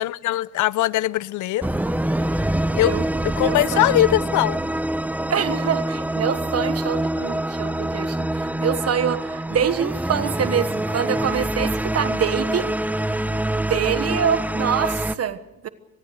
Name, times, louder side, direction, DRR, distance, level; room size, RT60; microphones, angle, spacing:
voice 1, 0.0-1.7 2.7-4.6, left 14 dB, 75° left, 0.7 m, -21 dB
sound 1, 1.6-15.1, right 1 dB, 5° right, 0.8 m, -25 dB
voice 2, 3.4-4.0 5.3-12.7 13.7-15.7, right 8 dB, 55° right, 1.3 m, -25 dB
25.0 x 19.5 x 6.5 m
cardioid pair, 90°, 30 cm